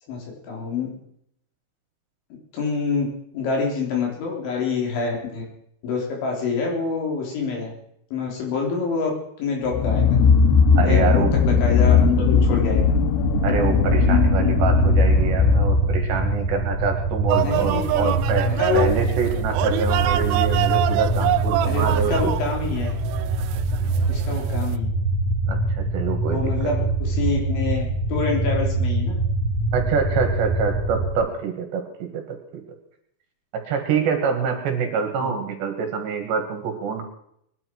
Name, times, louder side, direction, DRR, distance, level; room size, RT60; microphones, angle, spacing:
voice 1, 0.1-0.9 2.5-3.1 3.3-5.4 5.8-7.7 8.1-9.1 9.4-10.2 10.8-12.8 17.4-18.1 18.6-18.9 21.6-23.0 24.1-24.9 26.3-29.2 35.2-35.4, left 4 dB, 70° left, -1 dB, 5.9 m, -26 dB
sound 1, 9.7-16.2, left 5 dB, 90° left, 4.0 m, -18 dB
voice 2, 10.8-11.3 13.4-18.5 18.7-22.3 25.5-26.5 29.7-32.6 33.7-37.0, right 6 dB, 65° right, 4 dB, 3.8 m, -26 dB
sound 2, 13.2-31.1, right 2 dB, 25° left, 5.4 m, -24 dB
sound 3, 17.3-24.8, right 15 dB, 85° right, 2.4 m, -26 dB
21.5 x 11.5 x 4.7 m, 0.70 s
omnidirectional pair, 5.7 m